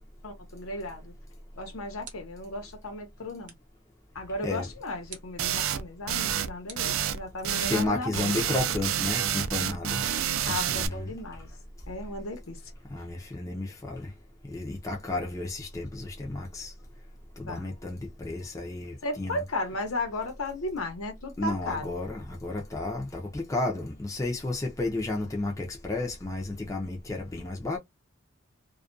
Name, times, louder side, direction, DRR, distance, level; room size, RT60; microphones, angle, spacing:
voice 1, 0.2-1.1 1.6-3.5 4.1-8.3 10.5-11.5 11.9-12.6 17.5-17.7 19.0-21.9, left 2 dB, 85° left, 0.9 m, -35 dB
sound 1, 2.0-2.5 3.4-3.8 5.1-5.5 6.7-7.6, right 6 dB, 40° right, 0.7 m, -49 dB
sound 2, 5.4-5.8 6.1-6.5 6.8-7.2 7.4-7.9 8.1-10.9, right 9 dB, 75° right, 0.4 m, -28 dB
voice 2, 7.7-10.0 10.5-11.1 12.9-14.1 14.5-16.7 17.4-19.4 21.4-27.8, left 2 dB, 15° left, 0.5 m, -32 dB
2.3 x 2.2 x 2.4 m
head